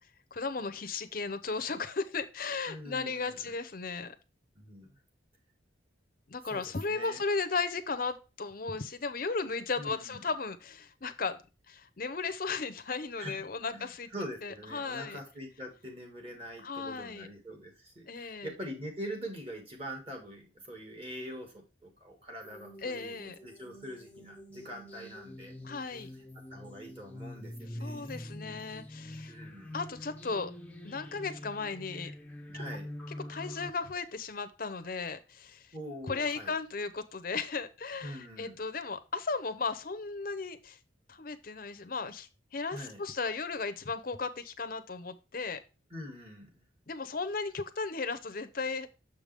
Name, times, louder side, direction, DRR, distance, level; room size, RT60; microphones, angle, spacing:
voice 1, 0.3-4.1 6.3-11.4 11.7-14.1 14.4-15.2 16.6-17.3 18.1-18.5 22.8-23.4 25.6-26.1 27.8-29.3 29.7-30.5 30.8-32.1 33.3-35.7 36.0-40.8 41.1-45.6 46.9-48.9, left 4 dB, 45° left, 12 dB, 0.6 m, -35 dB
voice 2, 2.7-3.5 4.6-5.0 6.4-7.2 9.7-10.2 13.2-25.6 25.9-26.0 26.5-28.3 29.3-29.7 32.5-32.9 35.7-36.5 38.0-38.6 42.7-43.0 45.9-46.6, equal, 30° right, 1 dB, 1.9 m, -44 dB
sound 1, 22.4-33.7, left 1 dB, 5° left, 0.6 m, -45 dB
7.0 x 5.2 x 3.3 m, 0.30 s
head